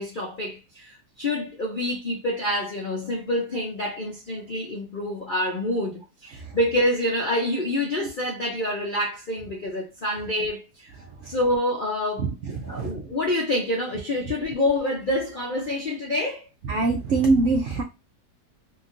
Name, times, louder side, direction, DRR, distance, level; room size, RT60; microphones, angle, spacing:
voice 1, 0.0-10.9 11.3-12.3 12.6-16.5, left 1 dB, 60° left, 0.5 m, -27 dB
voice 2, 12.2-13.0 16.7-17.8, right 3 dB, 70° right, 0.7 m, -23 dB
2.9 x 2.8 x 2.5 m
omnidirectional pair, 1.8 m